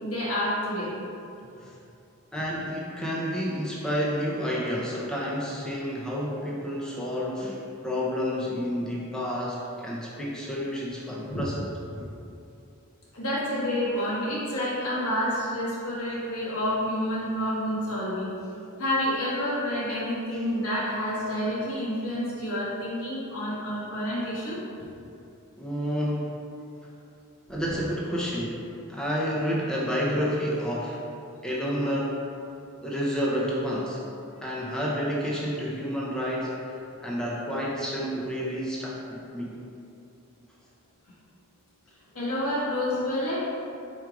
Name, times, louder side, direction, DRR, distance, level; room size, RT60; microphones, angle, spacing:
voice 1, 0.0-0.9 11.3-11.4 12.0-12.1 13.1-18.3 18.8-24.6 42.1-43.5, equal, 85° left, -8 dB, 1.4 m, -29 dB
voice 2, 2.3-11.6 20.4-20.6 25.6-26.3 27.5-31.0 31.4-32.2 32.8-34.0 34.4-39.6, equal, 5° left, -5 dB, 0.5 m, -30 dB
4.4 x 2.4 x 4.6 m, 2.6 s
head